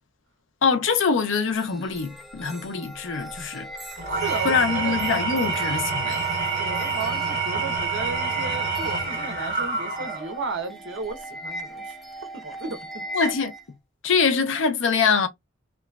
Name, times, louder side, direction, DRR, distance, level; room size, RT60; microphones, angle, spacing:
voice 1, 0.6-3.7 4.4-6.2 13.1-13.5 14.0-15.3, left 5 dB, 65° left, 0.5 m, -23 dB
sound 1, 1.5-13.6, right 1 dB, ahead, 0.5 m, -39 dB
Engine / Tools, 4.0-10.4, right 4 dB, 40° right, 1.5 m, -27 dB
voice 2, 4.1-5.0 6.6-12.0 12.3-12.8, right 3 dB, 60° right, 0.9 m, -34 dB
2.9 x 2.3 x 2.3 m
head